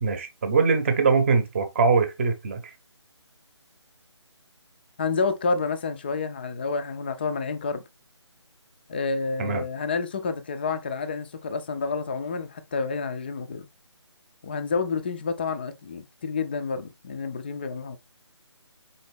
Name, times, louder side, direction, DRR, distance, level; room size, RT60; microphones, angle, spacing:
voice 1, 0.0-2.7 9.4-9.6, right 4 dB, 25° right, 0.8 m, -22 dB
voice 2, 5.0-7.8 8.9-13.7 14.4-18.0, left 4 dB, 20° left, 0.4 m, -29 dB
4.1 x 3.8 x 3.4 m
figure-of-eight pair, 150°, 15 cm